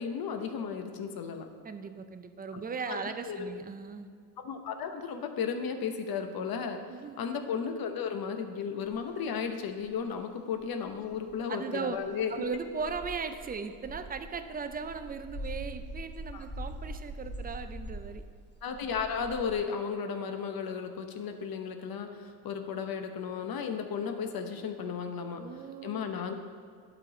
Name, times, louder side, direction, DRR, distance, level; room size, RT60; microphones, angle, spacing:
voice 1, 0.0-1.5 2.5-2.6 2.9-3.0 3.3-3.5 4.4-6.8 7.2-12.4 16.3-16.4 18.6-25.4 25.8-26.4, left 6 dB, 50° left, 6 dB, 0.9 m, -34 dB
voice 2, 1.6-4.1 6.9-7.2 11.5-12.0 12.3-18.2 25.4-26.1, right 5 dB, 20° right, 9 dB, 0.5 m, -38 dB
sound 1, 8.9-9.0 9.8-9.9 10.5-10.6 10.9-11.3 11.9-19.6, equal, 25° left, 1.2 m, -43 dB
11.5 x 4.1 x 3.9 m, 2.2 s
cardioid pair, 85°, 46 cm